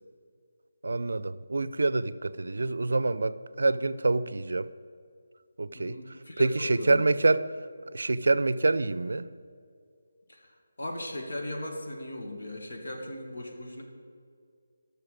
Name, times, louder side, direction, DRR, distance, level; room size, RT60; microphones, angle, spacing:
voice 1, 0.8-4.7 5.6-6.0 6.4-7.5 7.9-9.3, right 3 dB, 80° right, 15 dB, 0.4 m, -26 dB
voice 2, 5.7-7.1 10.3-10.5 10.8-13.8, left 1 dB, 70° left, 1 dB, 1.9 m, -38 dB
13.0 x 6.7 x 5.0 m, 2.2 s
figure-of-eight pair, 170°, 0 cm